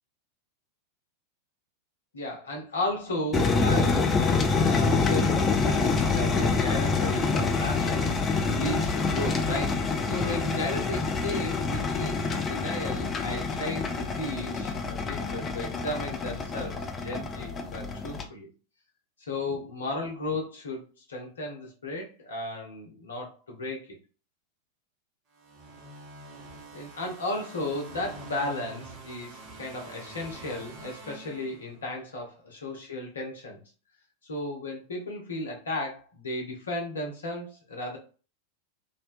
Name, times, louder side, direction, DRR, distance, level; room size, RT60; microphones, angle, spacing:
voice 1, 2.1-5.4 5.6-18.5 19.2-23.8 26.7-33.6 34.2-38.0, left 2 dB, 70° left, 0 dB, 0.8 m, -35 dB
sound 1, 3.3-18.2, left 4 dB, 20° left, 0.4 m, -26 dB
sound 2, 25.4-32.0, right 3 dB, 35° right, 1.0 m, -46 dB
2.6 x 2.2 x 2.5 m, 0.36 s
figure-of-eight pair, 90°, 0 cm